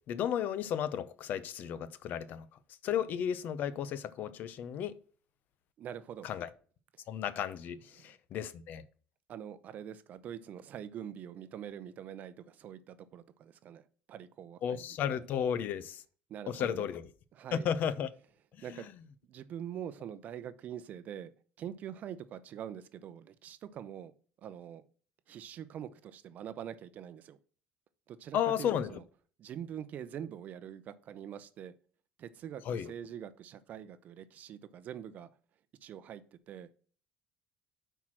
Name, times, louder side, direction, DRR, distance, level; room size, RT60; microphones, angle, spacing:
voice 1, 0.1-2.5 2.8-4.9 6.2-6.5 7.1-8.8 14.6-16.0 16.5-17.0 17.5-18.1 18.7-18.8 28.3-28.9 32.7-32.9, left 9 dB, 55° left, 0.5 m, -33 dB
voice 2, 5.8-6.3 7.9-8.1 9.3-13.8 14.1-15.0 16.3-16.9 17.3-17.7 18.6-18.9 19.3-21.3 21.6-24.1 24.4-24.8 25.3-27.4 28.1-29.0 29.4-31.7 32.2-35.3 35.8-36.7, right 9 dB, 45° right, 0.6 m, -44 dB
5.8 x 4.6 x 6.1 m
cardioid pair, 150°, 4 cm